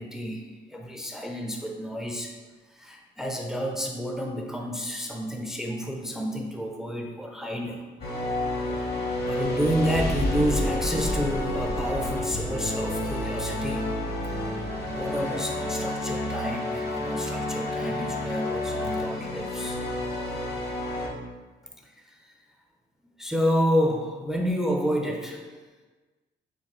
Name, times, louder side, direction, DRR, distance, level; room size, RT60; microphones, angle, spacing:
voice 1, 0.0-2.3 2.8-7.8 8.7-8.8 9.3-14.0 14.9-19.8 23.2-25.4, equal, ahead, 0 dB, 0.5 m, -29 dB
sound 1, 8.0-21.1, left 1 dB, 55° left, 1.0 m, -29 dB
4.6 x 3.1 x 3.1 m, 1.3 s
cardioid pair, 90°, 20 cm